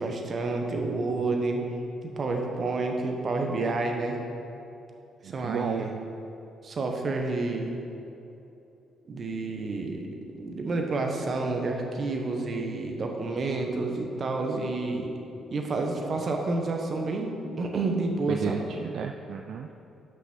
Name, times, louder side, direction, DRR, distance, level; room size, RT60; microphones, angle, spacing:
voice 1, 0.0-1.7 2.0-4.2 5.2-5.9 6.6-7.7 9.1-10.1 10.3-15.1 15.5-18.6, right 3 dB, 45° right, 2 dB, 1.0 m, -29 dB
voice 2, 5.2-5.9 18.3-19.7, right 6 dB, 70° right, 4 dB, 0.3 m, -32 dB
5.7 x 5.7 x 6.0 m, 2.9 s
cardioid pair, 90°, 0 cm